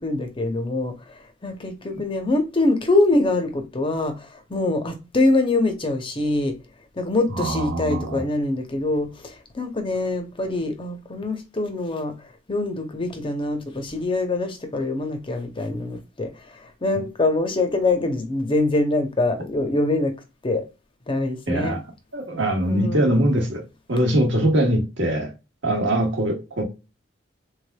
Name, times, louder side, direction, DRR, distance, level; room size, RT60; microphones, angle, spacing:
voice 1, 0.0-6.6 6.9-20.2 20.4-20.6 21.1-21.8 22.7-23.3, left 2 dB, 25° left, 0.6 m, -24 dB
voice 2, 7.3-8.3 21.5-21.8 22.1-23.6 23.9-25.3 25.6-26.6, right 1 dB, 65° right, 1.0 m, -22 dB
3.4 x 3.3 x 2.2 m
head